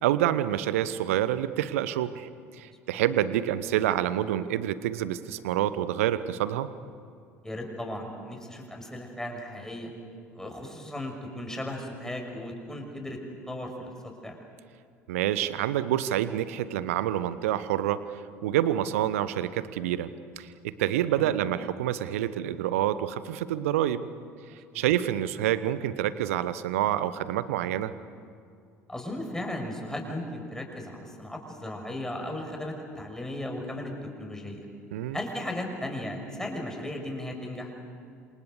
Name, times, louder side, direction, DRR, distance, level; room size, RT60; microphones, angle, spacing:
voice 1, 0.0-6.7 15.1-20.1 20.4-20.5 20.8-24.0 24.7-27.9 34.9-35.2, right 12 dB, 65° right, 14 dB, 1.1 m, -27 dB
voice 2, 2.6-3.0 7.4-9.9 10.3-13.2 13.5-14.4 21.2-21.3 24.5-24.8 28.9-34.7 35.1-37.7, left 1 dB, 5° left, 2 dB, 6.3 m, -36 dB
28.5 x 26.5 x 6.8 m, 2.3 s
figure-of-eight pair, 60°, 8 cm